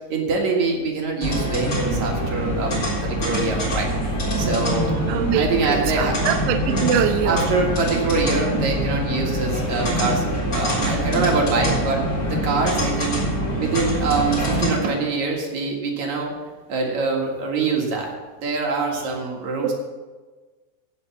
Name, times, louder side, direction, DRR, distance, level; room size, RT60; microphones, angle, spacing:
voice 1, 0.1-3.9 4.4-5.1 5.3-6.3 7.2-13.2 13.6-16.3 16.7-18.1 18.4-19.7, right 3 dB, 55° right, 0 dB, 2.3 m, -24 dB
sound 1, 1.2-14.7, right 1 dB, 30° left, 4.2 m, -24 dB
voice 2, 5.1-7.5 19.6-19.7, right 8 dB, 75° right, 5 dB, 2.8 m, -23 dB
17.0 x 5.7 x 7.2 m, 1.3 s
omnidirectional pair, 5.6 m